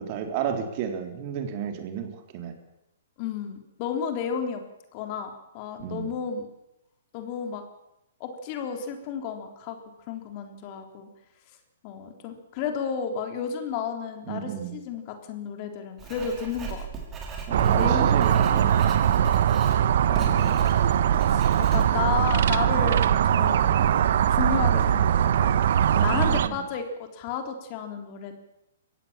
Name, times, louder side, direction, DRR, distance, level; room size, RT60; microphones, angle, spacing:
voice 1, 0.0-2.6 5.8-6.1 14.3-14.8 17.5-19.0 25.9-26.6, right 8 dB, 40° right, 5 dB, 3.6 m, -32 dB
voice 2, 3.2-4.6 4.9-6.5 7.1-7.6 8.2-9.8 10.1-11.1 11.8-16.9 17.6-18.6 20.1-20.7 21.3-23.8 24.3-25.6 25.9-28.4, left 7 dB, 40° left, 5 dB, 3.5 m, -32 dB
Writing, 16.0-22.1, right 5 dB, 20° right, 5.5 m, -38 dB
sound 1, 17.5-26.5, right 9 dB, 60° right, 1.2 m, -21 dB
22.5 x 17.0 x 7.4 m, 0.89 s
hypercardioid pair, 130°, 0 cm